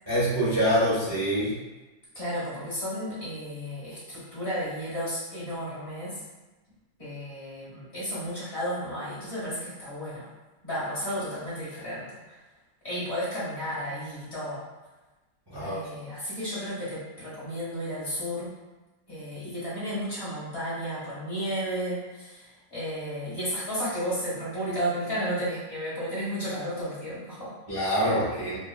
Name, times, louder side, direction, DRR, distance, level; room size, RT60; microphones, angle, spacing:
voice 1, 0.1-1.5 15.5-15.8 27.7-28.6, equal, 20° right, -12 dB, 0.7 m, -25 dB
voice 2, 2.1-6.2 7.0-10.3 10.6-12.2 12.8-14.6 15.6-18.5 19.1-27.5, equal, 40° left, -10 dB, 1.5 m, -33 dB
3.5 x 2.1 x 2.3 m, 1.1 s
omnidirectional pair, 1.9 m